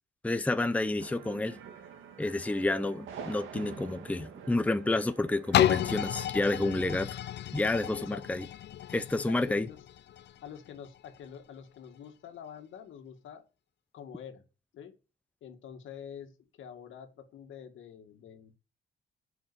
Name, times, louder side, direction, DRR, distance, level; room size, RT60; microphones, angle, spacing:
voice 1, 0.2-1.6 2.2-7.2 7.5-8.4 8.9-9.7, left 2 dB, 5° left, 0.7 m, -30 dB
sound 1, 1.0-6.3, right 7 dB, 85° right, 1.8 m, -46 dB
sound 2, 5.5-11.3 11.8-11.9, left 11 dB, 60° left, 0.5 m, -32 dB
voice 2, 7.9-8.4 9.2-9.8 10.4-13.4 13.9-14.4 14.7-14.9 15.4-16.3 16.6-18.5, left 8 dB, 75° left, 2.1 m, -46 dB
9.5 x 6.3 x 7.0 m
cardioid pair, 90°, 20 cm